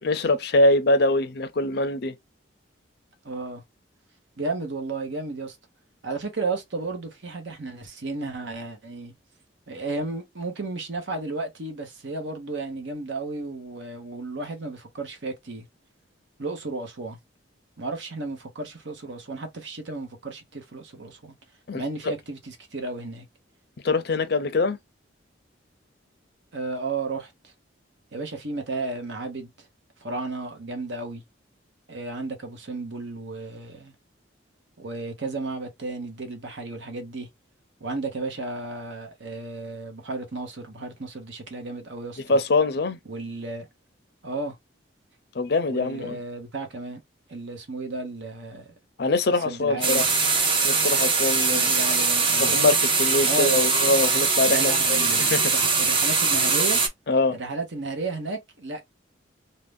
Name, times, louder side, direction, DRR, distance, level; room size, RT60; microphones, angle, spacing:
voice 1, 0.0-2.1 21.7-22.1 23.8-24.8 42.3-43.0 45.3-46.2 49.0-50.1 50.6-51.7 52.4-55.5 57.1-57.3, left 2 dB, 55° left, 0.5 m, -23 dB
voice 2, 3.2-3.6 4.4-5.6 6.0-9.1 9.7-15.7 16.4-17.2 17.8-21.3 21.7-23.3 26.5-27.5 28.1-29.7 30.0-31.2 31.9-33.9 34.8-37.3 37.8-42.4 43.0-43.7 44.2-44.6 45.7-47.0 47.3-48.7 49.4-50.0 51.5-52.5 53.2-53.6 54.5-56.8 57.3-58.8, right 3 dB, 70° right, 0.9 m, -33 dB
sound 1, 49.8-56.9, right 4 dB, 25° right, 0.6 m, -22 dB
2.6 x 2.1 x 3.3 m
head